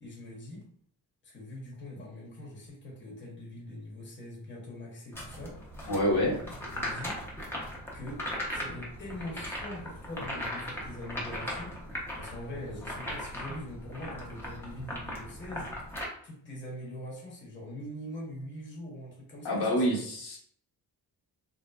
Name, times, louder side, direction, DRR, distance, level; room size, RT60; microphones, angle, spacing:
voice 1, 0.0-0.6 1.2-5.9 6.2-7.2 7.9-11.8 12.2-15.9 16.2-19.8, left 1 dB, 30° left, -4 dB, 0.9 m, -43 dB
sound 1, 5.1-16.0, equal, 5° left, 0.7 m, -38 dB
voice 2, 5.9-6.4 19.4-20.4, equal, 75° left, -3 dB, 1.1 m, -27 dB
3.7 x 2.6 x 2.3 m, 0.63 s
wide cardioid pair, 175°, 39 cm